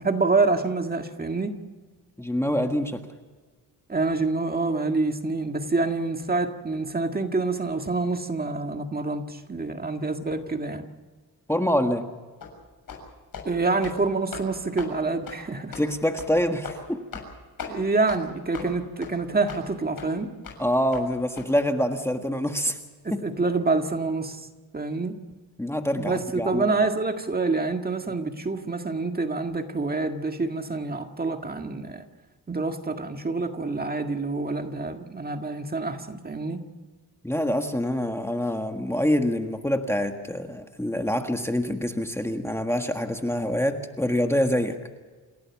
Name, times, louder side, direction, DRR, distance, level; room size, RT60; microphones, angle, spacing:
voice 1, 0.0-1.6 3.9-10.8 13.5-15.8 17.7-20.3 23.0-24.5 24.7-25.2 25.9-32.0 32.5-36.6, right 3 dB, 25° right, 5 dB, 1.8 m, -27 dB
voice 2, 2.2-3.0 11.5-12.1 15.8-17.0 20.6-22.8 25.6-26.6 37.2-44.8, equal, 5° left, 5 dB, 1.6 m, -25 dB
sound 1, 12.4-12.5 12.9-13.0 13.3-13.5 13.8-14.0 14.3-14.5 14.8-14.9 15.3-15.4 15.7-15.9 16.2-16.3 16.6-16.8 17.1-17.3 17.6-17.7 18.1-18.2 18.5-18.7 19.0-19.1 19.5-19.6 20.0-20.1 20.4-20.6 20.9-21.0 21.4-21.5, left 6 dB, 65° left, 6.9 m, -38 dB
28.5 x 17.0 x 7.2 m, 1.4 s
wide cardioid pair, 125°, 37 cm